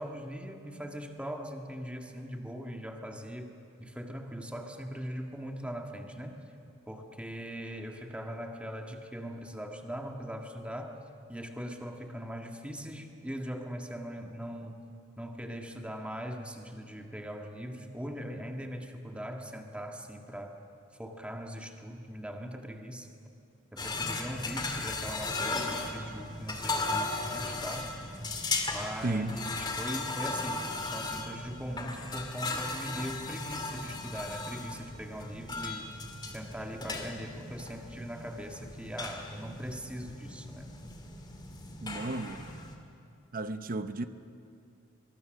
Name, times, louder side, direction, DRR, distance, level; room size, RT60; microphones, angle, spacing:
voice 1, 0.0-3.5 3.8-6.4 6.9-11.0 11.3-14.8 15.2-20.6 21.0-23.1 23.7-28.0 28.7-40.7, equal, 5° right, 2 dB, 1.7 m, -40 dB
sound 1, 23.8-42.7, left 3 dB, 20° left, 2.3 m, -37 dB
voice 2, 29.0-29.4 41.8-42.4 43.3-44.1, right 2 dB, 45° right, 10 dB, 0.8 m, -33 dB
24.0 x 22.5 x 6.5 m, 2.6 s
head